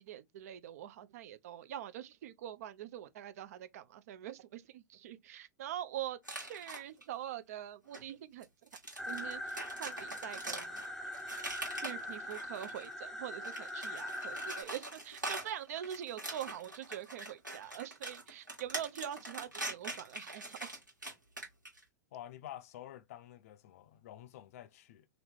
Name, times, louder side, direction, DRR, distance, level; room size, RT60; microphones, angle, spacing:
voice 1, 0.0-8.5 9.1-10.8 11.8-20.8, right 11 dB, 55° right, 0.5 m, -44 dB
sound 1, 6.2-7.0 7.9-8.0 8.4-12.9 13.3-21.8, right 1 dB, 90° right, 1.5 m, -43 dB
sound 2, 9.0-14.6, left 1 dB, 5° left, 0.6 m, -42 dB
voice 2, 22.1-25.1, left 12 dB, 50° left, 0.4 m, -49 dB
2.9 x 2.6 x 3.3 m
figure-of-eight pair, 95°, 10 cm